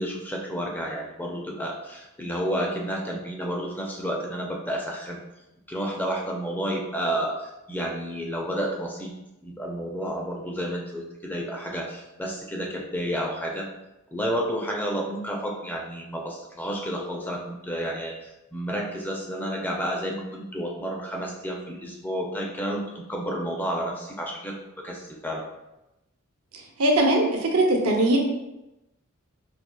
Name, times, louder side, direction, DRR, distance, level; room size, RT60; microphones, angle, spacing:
voice 1, 0.0-5.2 5.7-9.1 9.4-13.7 14.1-25.5, equal, 10° left, -1 dB, 0.4 m, -31 dB
voice 2, 26.8-28.2, right 1 dB, 75° right, 1 dB, 0.7 m, -20 dB
4.2 x 2.6 x 2.2 m, 0.93 s
head